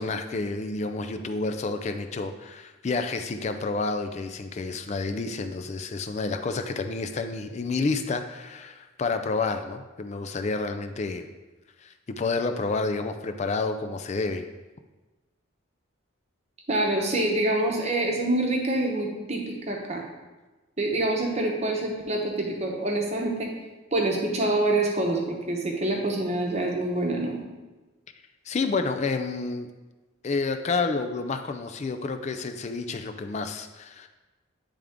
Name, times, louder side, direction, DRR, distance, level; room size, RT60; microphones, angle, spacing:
voice 1, 0.0-11.2 11.8-14.4 28.5-29.7 30.2-34.1, left 3 dB, 35° left, 8 dB, 0.3 m, -29 dB
voice 2, 16.7-20.0 20.8-23.5 23.9-27.4, right 2 dB, 30° right, 0 dB, 0.9 m, -26 dB
8.9 x 3.5 x 3.6 m, 1.2 s
head